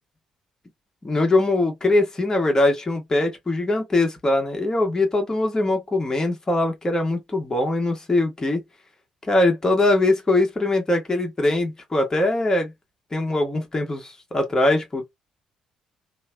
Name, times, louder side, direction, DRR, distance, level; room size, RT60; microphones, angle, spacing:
voice 1, 1.0-8.6 9.2-12.7 13.1-15.0, left 2 dB, 20° left, 1.0 m, -22 dB
3.0 x 2.0 x 2.2 m
figure-of-eight pair, 45°, 3 cm